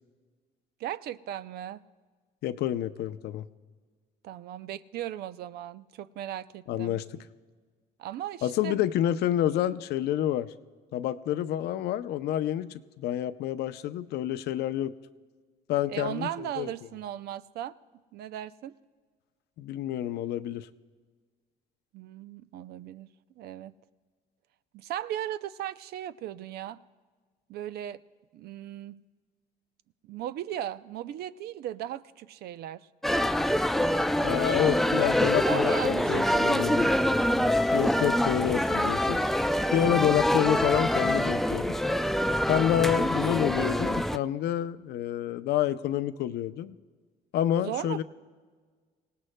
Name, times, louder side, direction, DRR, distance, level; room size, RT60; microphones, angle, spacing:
voice 1, 0.8-1.8 4.2-7.0 8.0-8.8 15.9-17.7 18.1-18.7 21.9-23.1 23.4-23.7 24.7-26.8 27.5-28.0 28.3-29.0 30.0-32.9 35.4-36.9 47.6-48.0, right 11 dB, 70° right, 14 dB, 0.5 m, -37 dB
voice 2, 2.4-3.5 6.7-7.2 8.4-10.5 10.9-14.9 15.7-16.7 19.6-20.7 34.2-36.9 37.3-39.5 39.7-41.7 42.5-46.7 47.3-48.0, left 11 dB, 75° left, 11 dB, 0.6 m, -28 dB
sound 1, 33.0-44.2, left 1 dB, ahead, 0.3 m, -25 dB
26.0 x 18.0 x 2.2 m, 1.5 s
cardioid pair, 110°, 17 cm